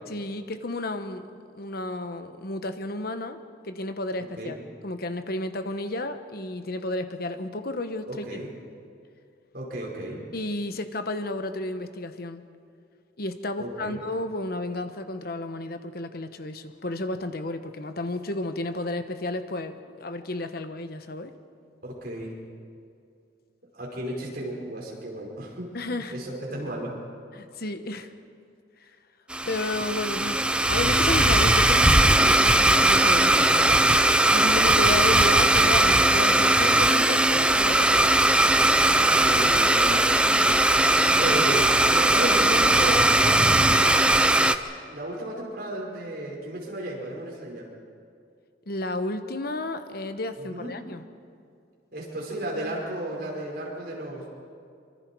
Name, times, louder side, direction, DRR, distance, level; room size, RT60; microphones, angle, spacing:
voice 1, 0.1-1.2 1.5-4.5 4.8-8.4 10.3-12.4 13.2-21.3 25.7-26.2 27.3-28.1 29.4-33.8 34.3-38.6 48.7-51.0, left 2 dB, 55° left, 9 dB, 1.1 m, -32 dB
voice 2, 8.1-8.5 9.5-10.2 13.6-14.0 21.8-22.3 23.7-25.7 26.1-26.9 39.2-40.1 41.2-44.4 44.9-47.7 50.4-50.7 51.9-54.3, right 1 dB, 55° right, -2 dB, 5.4 m, -33 dB
Domestic sounds home sounds, 29.3-44.6, right 1 dB, 5° right, 0.6 m, -19 dB
25.0 x 24.5 x 4.7 m, 2.4 s
head